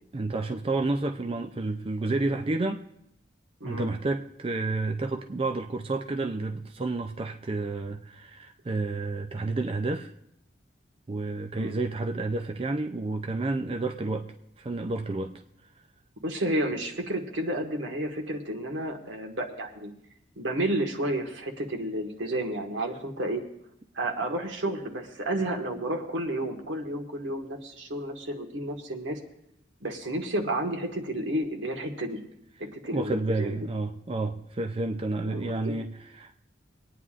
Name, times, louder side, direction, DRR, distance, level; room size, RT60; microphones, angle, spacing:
voice 1, 0.1-2.8 3.6-10.1 11.1-14.3 14.6-15.3 32.9-36.4, right 2 dB, 30° right, 5 dB, 0.4 m, -30 dB
voice 2, 3.6-3.9 11.6-11.7 16.2-19.9 20.4-23.4 23.9-29.2 29.8-32.2 32.6-33.6 35.2-35.7, right 1 dB, 80° right, 3 dB, 1.5 m, -31 dB
26.0 x 9.4 x 2.5 m, 0.77 s
head